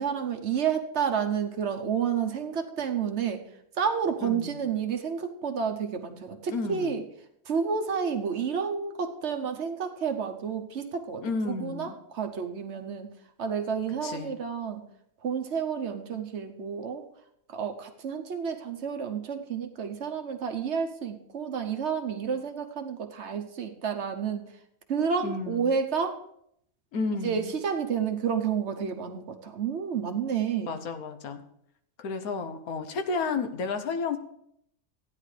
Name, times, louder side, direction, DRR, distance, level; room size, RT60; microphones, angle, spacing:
voice 1, 0.0-3.4 3.8-7.0 7.5-13.1 13.4-14.8 15.2-17.0 17.5-24.5 24.9-26.2 27.2-30.8, right 7 dB, 55° right, 6 dB, 1.0 m, -30 dB
voice 2, 4.2-4.7 6.5-7.0 11.2-12.0 14.0-14.4 25.2-25.8 26.9-27.5 30.7-31.4 32.0-34.2, left 4 dB, 90° left, 9 dB, 1.4 m, -32 dB
15.0 x 9.8 x 3.3 m, 0.73 s
omnidirectional pair, 1.5 m